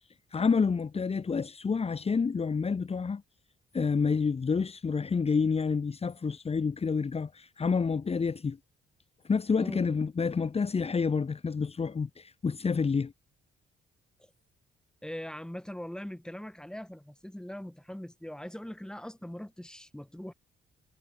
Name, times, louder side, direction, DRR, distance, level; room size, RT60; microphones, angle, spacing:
voice 1, 0.3-3.2 3.7-8.6 9.2-13.1, left 5 dB, 30° left, 1.4 m, -28 dB
voice 2, 15.0-20.3, equal, 5° left, 4.9 m, -41 dB
cardioid pair, 90°, 20 cm